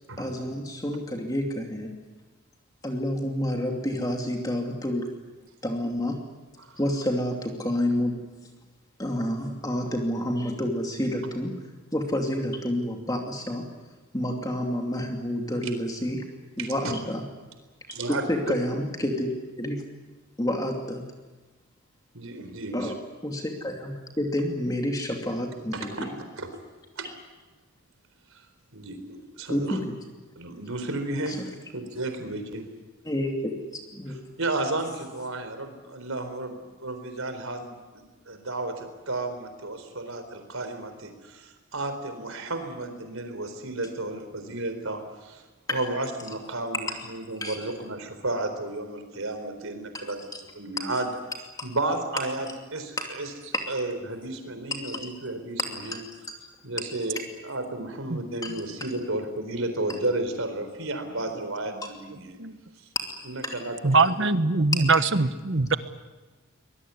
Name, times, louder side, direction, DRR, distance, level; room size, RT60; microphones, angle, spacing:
voice 1, 0.2-2.0 2.8-5.1 5.6-6.2 6.8-8.2 9.0-11.5 11.9-13.7 14.1-16.2 16.6-17.3 18.1-19.3 19.6-19.8 20.4-21.0 22.7-23.0 23.2-26.1 29.5-29.9 31.3-31.4 33.0-33.5 33.9-34.2 47.4-47.6 49.9-50.0 50.3-50.4 50.8-50.9 51.6-51.7 53.0-53.1 53.5-53.6 54.7-55.1 55.8-56.0 58.4-58.5 61.8-61.9 62.9-63.6, left 1 dB, 15° left, 2 dB, 2.6 m, -29 dB
voice 2, 17.9-18.2 22.1-22.9 25.7-26.1 26.4-26.5 27.0-27.1 28.3-28.5 28.7-29.8 30.4-31.4 31.7-32.6 34.4-45.4 45.7-50.2 50.6-51.1 51.6-53.3 53.7-56.0 56.6-62.9 63.2-64.4, right 2 dB, 80° right, 7 dB, 4.1 m, -33 dB
voice 3, 63.8-65.8, right 3 dB, 60° right, 12 dB, 1.3 m, -22 dB
24.0 x 21.0 x 9.7 m, 1.2 s
head